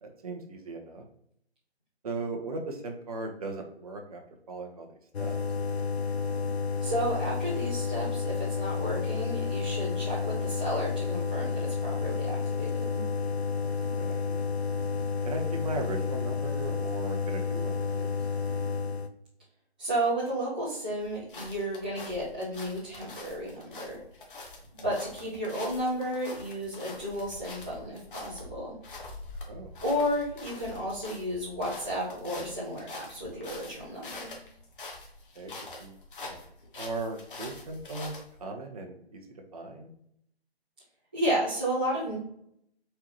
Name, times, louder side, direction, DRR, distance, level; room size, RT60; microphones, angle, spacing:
voice 1, 0.0-1.0 2.0-4.2 4.5-4.9 5.2-5.3 13.6-13.7 14.0-14.4 15.2-18.5 29.5-29.7 35.3-35.5 35.8-36.4 36.8-39.2 39.5-39.9, right 3 dB, 35° right, 2 dB, 0.9 m, -38 dB
sound 1, 5.1-19.1, left 5 dB, 80° left, 0.7 m, -31 dB
voice 2, 6.8-13.0 19.8-24.0 24.7-28.8 29.8-34.3 41.1-42.2, equal, 10° right, -11 dB, 0.4 m, -32 dB
sound 2, 21.0-38.4, left 2 dB, 55° left, 1.5 m, -45 dB
4.5 x 3.8 x 3.0 m, 0.71 s
figure-of-eight pair, 140°, 31 cm